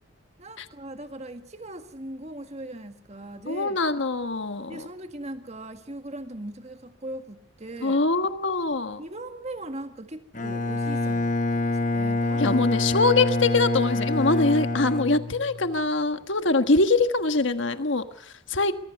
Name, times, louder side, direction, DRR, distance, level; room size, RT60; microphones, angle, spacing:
voice 1, 0.4-3.8 4.7-8.0 9.0-12.6, right 1 dB, 35° right, 7 dB, 1.9 m, -39 dB
voice 2, 3.5-4.9 7.8-9.0 12.4-18.7, left 3 dB, 70° left, 9 dB, 1.4 m, -23 dB
Bowed string instrument, 10.3-15.8, left 2 dB, 40° left, 1.1 m, -26 dB
23.5 x 22.5 x 6.0 m, 0.63 s
head